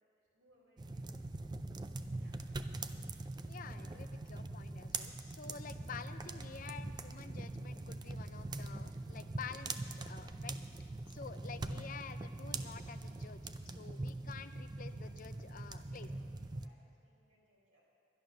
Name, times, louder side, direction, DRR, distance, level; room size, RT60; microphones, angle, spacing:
voice 1, 0.3-1.2 2.2-3.1 15.4-17.8, equal, 90° right, -4 dB, 4.1 m, -70 dB
sound 1, 0.8-16.7, right 2 dB, 20° right, 0.4 m, -43 dB
voice 2, 3.5-13.4 13.7-16.1, left 6 dB, 45° left, 10 dB, 0.5 m, -50 dB
11.0 x 11.0 x 6.4 m, 2.4 s
head